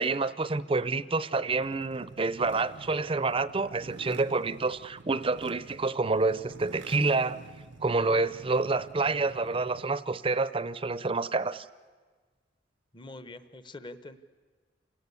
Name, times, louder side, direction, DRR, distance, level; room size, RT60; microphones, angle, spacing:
voice 1, 0.0-7.4 7.8-11.6, right 3 dB, 30° right, 0.6 m, -28 dB
sound 1, 1.5-10.0, right 3 dB, 75° right, 0.8 m, -48 dB
voice 2, 12.9-14.2, left 2 dB, 25° left, 0.8 m, -44 dB
28.5 x 18.0 x 8.3 m
head